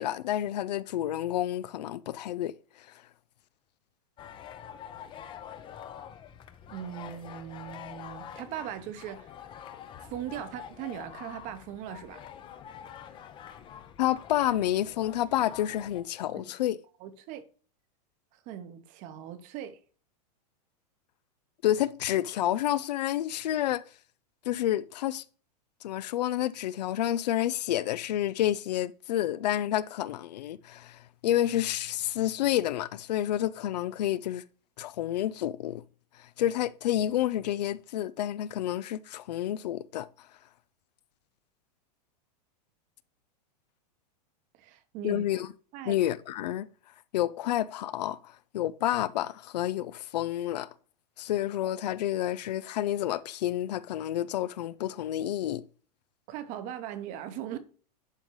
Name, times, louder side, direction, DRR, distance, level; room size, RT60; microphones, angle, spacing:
voice 1, 0.0-2.5 14.0-16.8 21.6-23.8 24.5-25.2 25.8-34.4 34.8-35.8 36.4-40.1 45.0-45.5 45.8-46.7 47.1-50.7 51.2-55.6, left 12 dB, 85° left, 0.5 m, -29 dB
sound 1, 4.2-16.0, left 9 dB, 25° left, 0.6 m, -46 dB
voice 2, 6.7-9.3 10.0-12.3 16.3-16.5 17.0-17.4 18.3-19.8 44.5-45.2 45.7-46.0 56.3-57.6, right 10 dB, 40° right, 0.9 m, -39 dB
11.5 x 3.8 x 3.1 m
supercardioid pair, 145°, 21 cm